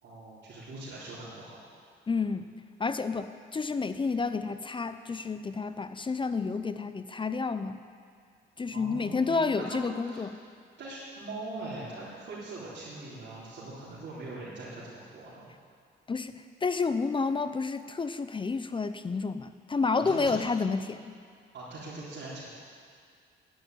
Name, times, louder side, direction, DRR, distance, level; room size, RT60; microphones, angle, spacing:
voice 1, 0.0-1.6 8.7-9.3 9.7-10.2 10.8-15.4 19.9-20.4 21.5-22.5, right 2 dB, 65° right, -9 dB, 3.7 m, -41 dB
voice 2, 2.1-2.5 2.8-7.8 8.6-10.3 16.1-21.2, left 4 dB, 25° left, 11 dB, 0.6 m, -30 dB
10.5 x 10.0 x 9.1 m, 2.2 s
cardioid pair, 90°, 20 cm